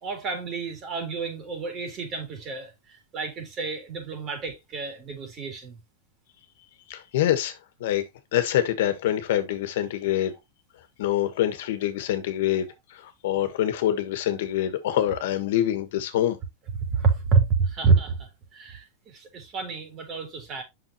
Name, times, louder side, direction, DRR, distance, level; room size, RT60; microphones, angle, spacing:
voice 1, 0.0-5.8 16.9-20.6, right 5 dB, 35° right, 3.4 m, -28 dB
voice 2, 6.9-8.0 8.3-10.3 11.0-16.4, left 12 dB, 70° left, 1.3 m, -25 dB
7.4 x 6.0 x 3.0 m
supercardioid pair, 120°, 0 cm